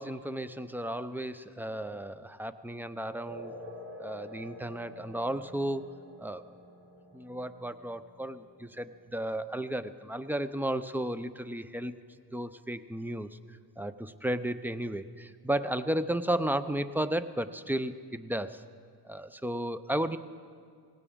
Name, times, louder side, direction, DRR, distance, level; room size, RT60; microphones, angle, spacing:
voice 1, 0.0-3.5 4.0-5.8 6.2-6.4 7.1-11.9 12.3-18.6 19.0-20.2, right 1 dB, 5° right, 12 dB, 0.5 m, -34 dB
sound 1, 3.3-10.3, left 1 dB, 75° right, 2.8 m, -49 dB
18.5 x 17.0 x 3.7 m, 2.2 s
cardioid pair, 65°, 42 cm